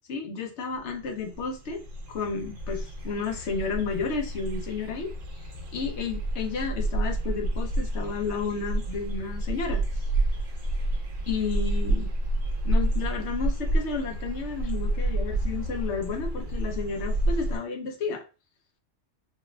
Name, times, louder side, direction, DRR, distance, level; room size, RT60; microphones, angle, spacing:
voice 1, 0.1-1.8 2.1-5.1 5.4-5.5 5.7-9.8 11.3-12.1 12.6-18.2, left 5 dB, 70° left, 4 dB, 1.0 m, -32 dB
sound 1, 0.8-0.9 1.0-17.6, right 1 dB, 85° right, 1.3 m, -29 dB
4.0 x 2.4 x 2.2 m, 0.32 s
omnidirectional pair, 1.2 m